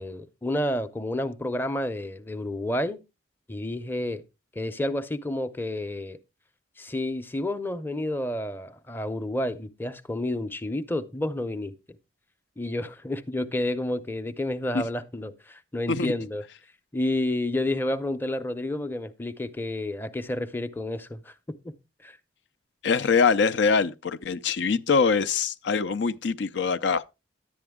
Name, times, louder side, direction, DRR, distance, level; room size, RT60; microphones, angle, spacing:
voice 1, 0.0-3.0 3.5-4.2 4.5-6.2 6.8-11.7 12.6-16.4 16.9-21.8 22.0-22.2, left 1 dB, 10° left, 0.6 m, -30 dB
voice 2, 22.8-27.0, left 5 dB, 75° left, 0.5 m, -23 dB
11.0 x 8.7 x 3.6 m
head